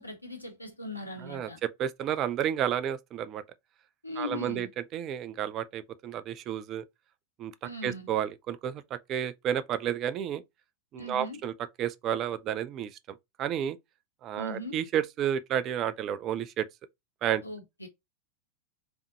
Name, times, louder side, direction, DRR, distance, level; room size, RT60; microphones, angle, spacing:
voice 1, 0.0-1.6 4.0-4.7 7.6-8.1 11.0-11.4 14.4-14.8 17.4-17.9, left 2 dB, 85° left, 1.2 m, -39 dB
voice 2, 1.2-3.4 4.2-6.8 7.4-7.5 7.8-10.4 10.9-11.5 11.8-13.8 14.2-16.7 17.2-17.4, right 9 dB, 35° right, 0.5 m, -31 dB
3.5 x 3.5 x 4.0 m
figure-of-eight pair, 90°, 0 cm